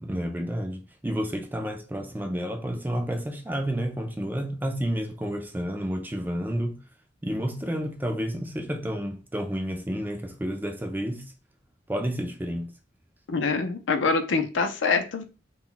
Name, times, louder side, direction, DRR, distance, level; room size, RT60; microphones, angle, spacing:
voice 1, 0.0-6.8 7.2-11.3 11.9-12.7, equal, 10° right, 0.3 m, -30 dB
voice 2, 13.3-15.2, left 4 dB, 75° left, 0.5 m, -25 dB
2.2 x 2.1 x 3.7 m
head